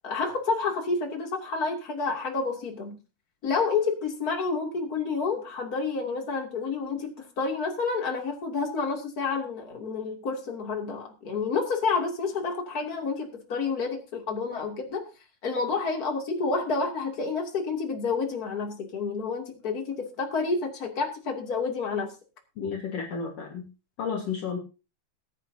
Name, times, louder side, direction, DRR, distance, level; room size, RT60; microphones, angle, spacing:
voice 1, 0.0-3.0 3.4-15.0 15.4-22.1, left 4 dB, 30° left, 1 dB, 2.9 m, -29 dB
voice 2, 22.6-23.6 24.0-24.6, left 6 dB, 55° left, 0 dB, 2.5 m, -32 dB
21.0 x 9.4 x 2.8 m, 0.32 s
omnidirectional pair, 3.8 m